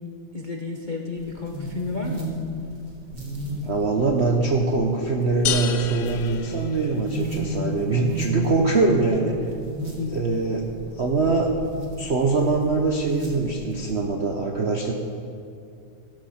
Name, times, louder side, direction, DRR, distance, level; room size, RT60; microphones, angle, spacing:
voice 1, 0.3-2.3 10.0-10.2, left 3 dB, 70° left, 1 dB, 0.4 m, -31 dB
sound 1, 1.2-14.0, equal, 30° right, 2.1 m, -35 dB
voice 2, 3.6-9.4 10.1-10.7 10.9-11.5 12.0-14.9, right 3 dB, 65° right, 1 dB, 0.6 m, -23 dB
sound 2, 5.5-7.3, left 10 dB, 85° left, 1.6 m, -30 dB
16.0 x 13.0 x 4.3 m, 2.5 s
omnidirectional pair, 2.4 m